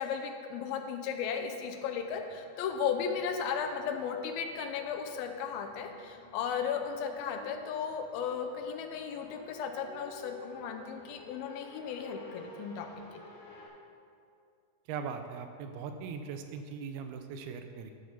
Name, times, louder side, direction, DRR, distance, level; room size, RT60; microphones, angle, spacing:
voice 1, 0.0-12.9 13.1-13.2, left 7 dB, 85° left, 5 dB, 2.5 m, -35 dB
sound 1, 1.6-13.7, left 1 dB, 50° left, 3.3 m, -53 dB
voice 2, 14.9-17.9, right 6 dB, 85° right, 7 dB, 2.7 m, -40 dB
13.0 x 5.2 x 5.7 m, 2.4 s
omnidirectional pair, 4.3 m